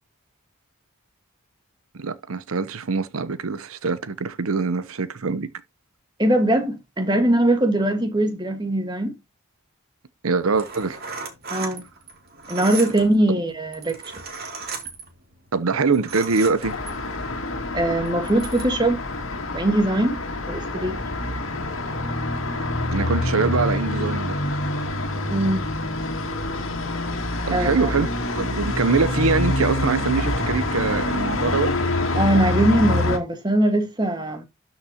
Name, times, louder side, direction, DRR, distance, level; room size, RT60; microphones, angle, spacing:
voice 1, 1.9-5.5 10.2-11.0 15.5-16.7 22.9-24.4 27.5-31.7, right 4 dB, 80° right, 0.8 m, -23 dB
voice 2, 6.2-9.2 11.5-11.8 12.5-14.0 17.7-19.0 19.5-20.2 20.5-21.0 25.3-25.7 27.5-27.9 32.1-34.4, right 1 dB, 20° right, 1.6 m, -21 dB
sound 1, 10.4-17.2 17.8-18.6, right 4 dB, 45° right, 2.4 m, -36 dB
Traffic noise roadway noise, 16.6-33.2, left 1 dB, 65° left, 2.2 m, -26 dB
12.5 x 6.0 x 2.9 m
head